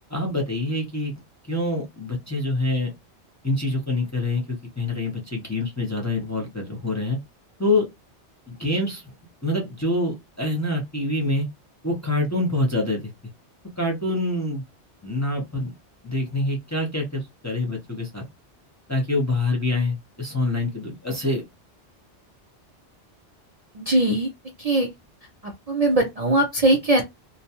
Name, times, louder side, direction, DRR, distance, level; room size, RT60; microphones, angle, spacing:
voice 1, 0.1-1.1 1.5-2.9 3.4-7.2 7.6-7.9 8.5-9.1 9.4-11.5 11.8-13.0 13.8-14.6 15.0-15.7 16.0-18.2 18.9-21.4, left 2 dB, 20° left, 0.6 m, -26 dB
voice 2, 23.7-24.3 24.6-24.9 25.4-27.0, right 1 dB, 45° right, 0.5 m, -21 dB
2.5 x 2.2 x 2.8 m
omnidirectional pair, 1.2 m